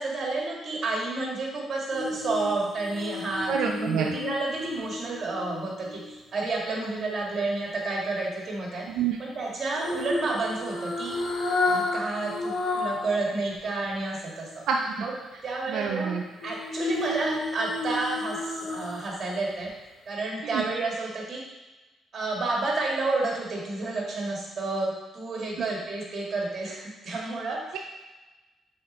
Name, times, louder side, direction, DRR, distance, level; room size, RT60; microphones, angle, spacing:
voice 1, 0.0-8.9 9.2-11.2 11.6-14.6 15.0-15.1 15.4-16.2 16.4-19.7 20.1-21.5 22.1-27.7, right 2 dB, 40° right, -2 dB, 2.1 m, -30 dB
sound 1, 1.9-6.1 9.7-13.1 13.5-13.6 16.4-19.3 19.6-19.8, left 2 dB, 75° left, 1.7 m, -32 dB
voice 2, 3.5-4.1 8.9-9.2 14.7-15.1 15.7-16.2 20.5-20.6, right 6 dB, 80° right, 1 dB, 0.5 m, -27 dB
6.3 x 4.3 x 4.4 m, 1.1 s
cardioid pair, 90°, 0 cm